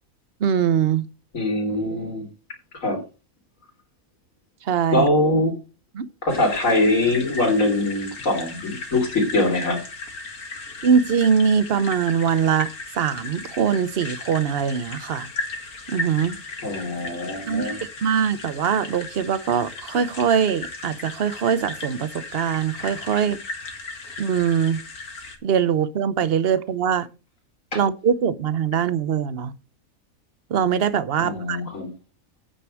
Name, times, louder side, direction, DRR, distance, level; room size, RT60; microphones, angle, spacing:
voice 1, 0.4-1.1 4.7-5.1 5.9-6.1 10.8-12.7 13.0-15.3 15.9-16.4 17.5-23.4 24.2-24.8 25.4-27.1 27.7-29.5 30.5-31.6, right 7 dB, 50° right, 0.9 m, -22 dB
voice 2, 1.3-2.3 2.8-3.0 4.9-5.5 6.2-9.8 16.6-17.8 27.7-27.8 31.2-31.9, left 2 dB, 60° left, 3.8 m, -22 dB
sound 1, 6.3-25.4, left 3 dB, 80° left, 2.5 m, -36 dB
9.1 x 6.9 x 6.3 m
omnidirectional pair, 1.5 m